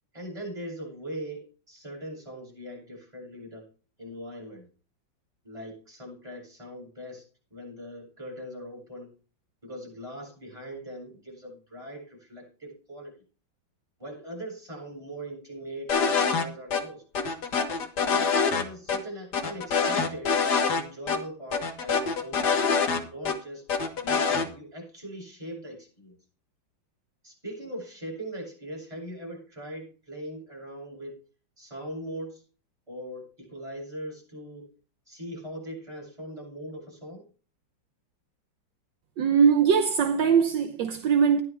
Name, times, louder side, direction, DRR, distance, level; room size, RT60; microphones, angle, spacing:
voice 1, 0.1-3.6 4.0-4.7 5.4-9.1 9.6-13.1 14.0-17.0 18.1-23.6 24.0-26.2 27.2-31.2 31.6-32.4 32.9-34.7 35.1-37.3, equal, 15° right, 7.7 m, -40 dB
sound 1, 15.9-16.5 16.7-16.8 17.2-18.6 18.9-19.0 19.3-20.8 21.1-21.2 21.5-23.4 23.7-24.5, left 5 dB, 60° left, 1.9 m, -25 dB
voice 2, 39.2-41.4, right 6 dB, 70° right, 1.5 m, -21 dB
15.0 x 10.5 x 3.6 m
omnidirectional pair, 2.2 m